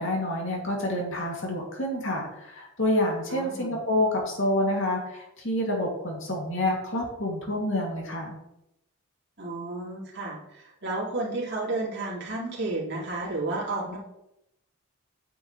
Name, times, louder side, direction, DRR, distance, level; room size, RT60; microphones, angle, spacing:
voice 1, 0.0-8.4, left 1 dB, 60° left, -1 dB, 2.9 m, -28 dB
voice 2, 3.3-3.7 9.4-14.0, right 2 dB, 50° right, -5 dB, 3.1 m, -32 dB
9.4 x 8.3 x 3.4 m, 0.85 s
head